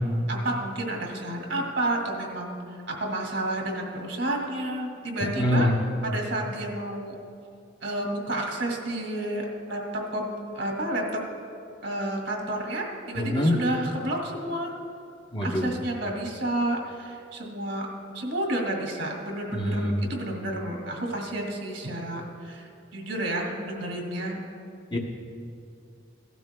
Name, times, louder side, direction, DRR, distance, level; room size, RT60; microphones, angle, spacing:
voice 1, 0.3-5.7 6.0-7.1 7.8-11.2 11.8-14.7 15.4-17.9 18.1-24.4, right 1 dB, 75° right, 0 dB, 2.1 m, -30 dB
voice 2, 5.3-5.8 13.2-13.5 15.3-15.7 19.5-20.0 24.9-25.0, left 1 dB, 25° left, 0 dB, 0.9 m, -24 dB
16.5 x 12.5 x 2.2 m, 2.5 s
head